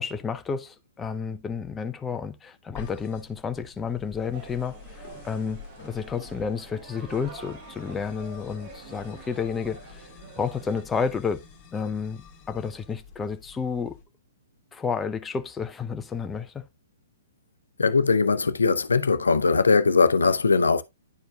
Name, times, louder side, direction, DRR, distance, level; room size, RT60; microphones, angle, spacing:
voice 1, 0.0-4.8 5.2-10.1 10.4-11.4 11.7-14.0 14.7-16.7, left 6 dB, 10° left, 0.6 m, -31 dB
sound 1, 2.7-14.0, left 5 dB, 35° left, 1.7 m, -48 dB
sound 2, 4.3-10.8, right 5 dB, 40° right, 1.2 m, -47 dB
voice 2, 17.8-20.8, left 4 dB, 70° left, 0.6 m, -20 dB
10.5 x 4.6 x 2.3 m
figure-of-eight pair, 120°, 0 cm